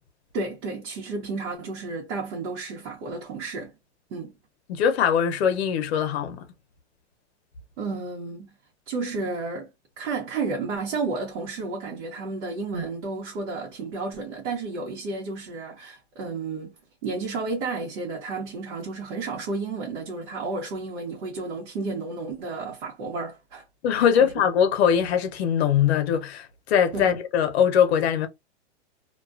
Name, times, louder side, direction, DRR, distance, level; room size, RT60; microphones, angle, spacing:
voice 1, 0.3-3.7 4.1-4.3 7.8-8.6 8.9-9.7 10.0-16.7 17.0-23.6 24.1-24.3 26.9-27.1, right 3 dB, 85° right, 1.0 m, -32 dB
voice 2, 4.7-6.5 23.8-28.3, left 8 dB, 60° left, 0.7 m, -22 dB
2.3 x 2.3 x 2.3 m
supercardioid pair, 170°, 35 cm